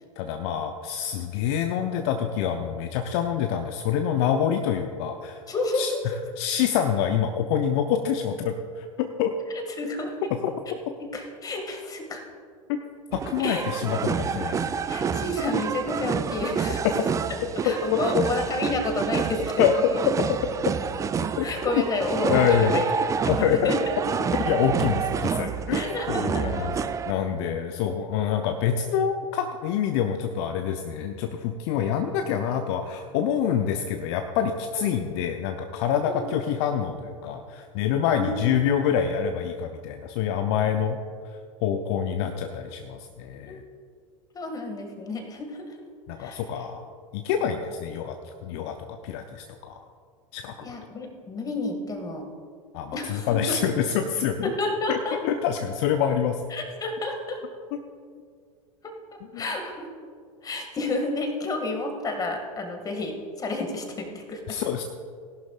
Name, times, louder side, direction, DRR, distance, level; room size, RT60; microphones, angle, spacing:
voice 1, 0.2-5.4 5.7-5.9 6.4-9.3 10.4-10.5 13.1-14.6 17.6-18.2 19.6-20.1 21.4-21.5 21.7-21.9 22.3-22.8 23.3-23.8 24.4-26.7 27.1-41.0 41.6-43.6 46.1-46.9 47.1-48.2 48.4-49.8 50.3-50.7 52.7-54.5 54.9-56.4 57.7-57.8 59.3-59.5 64.5-64.8, left 8 dB, 50° left, 6 dB, 0.7 m, -26 dB
voice 2, 5.5-6.0 9.5-10.2 11.0-12.2 13.4-13.6 14.9-16.8 17.6-19.4 21.4-22.9 23.2-23.9 25.7-26.7 34.7-34.9 36.0-36.3 38.0-38.5 43.5-43.6 44.3-45.7 46.2-46.4 50.6-52.3 52.9-53.6 54.4-55.2 56.5-57.4 58.8-58.9 59.3-59.9 60.4-64.6, left 2 dB, 20° left, 4 dB, 2.0 m, -30 dB
sound 1, 13.1-27.1, right 6 dB, 20° right, 0.5 m, -28 dB
18.0 x 11.5 x 2.4 m, 2.1 s
figure-of-eight pair, 85°, 17 cm